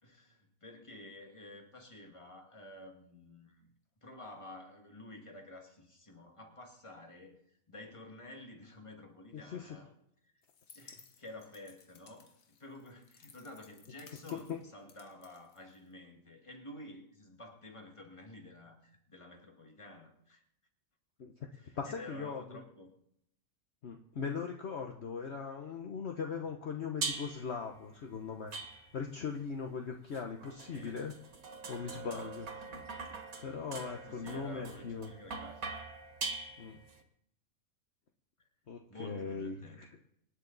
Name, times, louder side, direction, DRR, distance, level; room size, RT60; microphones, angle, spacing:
voice 1, 0.0-3.7 4.0-9.9 10.2-10.4 10.7-20.4 21.5-22.9 26.0-26.2 30.7-31.0 31.9-32.4 32.7-32.9 34.1-35.7 38.9-40.0, left 1 dB, 20° left, 2 dB, 2.0 m, -51 dB
voice 2, 9.3-9.7 14.3-14.6 21.2-21.3 21.8-22.6 23.8-28.6 28.9-31.1 31.7-32.5 33.4-35.1 36.6-36.8 38.7-39.9, left 5 dB, 55° left, 3 dB, 1.2 m, -39 dB
sound 1, 10.4-16.1, left 6 dB, 75° left, 1.5 m, -60 dB
sound 2, 27.0-27.6 28.5-29.2 30.1-37.0, right 4 dB, 85° right, 1.8 m, -42 dB
25.5 x 10.0 x 4.0 m, 0.76 s
omnidirectional pair, 1.4 m